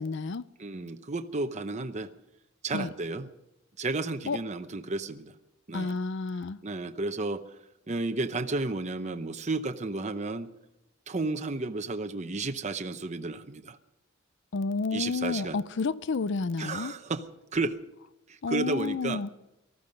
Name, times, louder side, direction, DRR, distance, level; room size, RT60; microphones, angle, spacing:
voice 1, 0.0-0.4 2.7-2.9 4.3-4.4 5.7-6.6 14.5-16.9 18.4-19.3, left 4 dB, 60° left, 0.5 m, -30 dB
voice 2, 0.6-2.1 2.6-3.3 3.8-5.3 5.7-6.0 6.6-7.6 7.9-10.5 11.1-13.8 14.9-15.6 16.6-17.3 17.5-17.8 18.3-19.2, right 3 dB, 35° right, 0.8 m, -32 dB
19.0 x 14.5 x 5.3 m
head